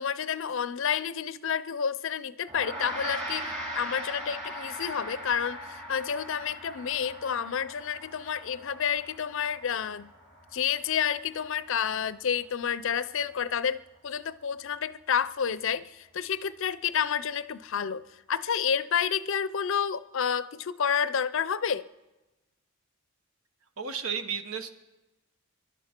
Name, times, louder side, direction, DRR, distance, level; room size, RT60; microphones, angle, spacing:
voice 1, 0.0-10.1 10.5-21.9, left 7 dB, 60° left, 0.5 m, -30 dB
Gong, 2.5-12.1, right 1 dB, 30° right, 5.6 m, -40 dB
voice 2, 23.8-24.7, right 6 dB, 70° right, 1.2 m, -33 dB
26.5 x 11.5 x 4.4 m
head